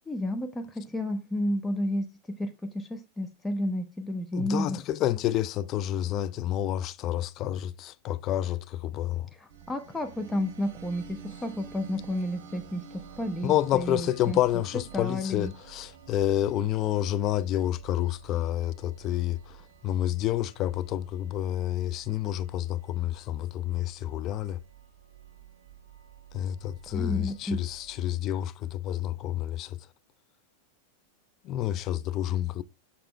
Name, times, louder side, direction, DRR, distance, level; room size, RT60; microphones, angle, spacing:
voice 1, 0.1-2.1 2.4-4.8 9.4-14.4 14.9-15.5 26.9-27.6, left 1 dB, 10° left, 0.8 m, -31 dB
voice 2, 4.3-9.3 13.4-24.6 26.3-29.8 31.4-32.6, left 12 dB, 35° left, 0.5 m, -29 dB
sound 1, 9.5-28.1, right 8 dB, 50° right, 1.7 m, -50 dB
6.9 x 5.6 x 3.2 m
figure-of-eight pair, 90°, 0 cm